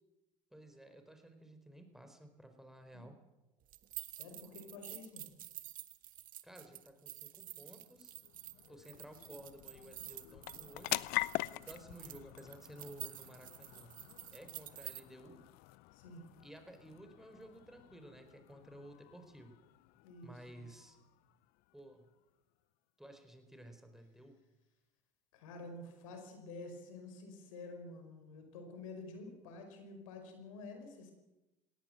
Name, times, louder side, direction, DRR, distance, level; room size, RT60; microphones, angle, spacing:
voice 1, 0.5-3.2 6.4-8.1 8.7-11.1 11.5-14.0 14.3-15.4 16.4-19.6 20.2-21.0 21.7-22.1 23.0-24.4, right 1 dB, ahead, 6 dB, 4.4 m, -54 dB
sound 1, 3.7-15.0, right 13 dB, 55° right, 1.6 m, -49 dB
voice 2, 4.1-5.3 15.9-16.3 20.0-20.7 25.3-31.1, left 3 dB, 80° left, 5 dB, 5.0 m, -49 dB
sound 2, 7.5-22.3, left 21 dB, 65° left, 0.6 m, -45 dB
21.0 x 17.5 x 7.8 m, 0.98 s
hypercardioid pair, 70°, 17 cm